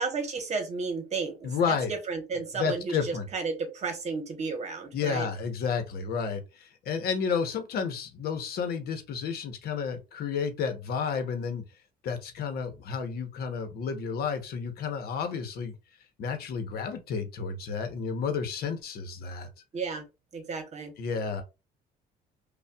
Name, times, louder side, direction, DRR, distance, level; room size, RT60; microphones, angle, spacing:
voice 1, 0.0-5.3 19.7-20.0 20.3-20.9, right 4 dB, 40° right, 1.1 m, -33 dB
voice 2, 1.4-1.9 2.5-3.3 4.9-11.6 12.0-15.8 16.2-19.5 21.0-21.4, left 6 dB, 65° left, 0.9 m, -31 dB
5.4 x 2.3 x 2.3 m
cardioid pair, 110°, 17 cm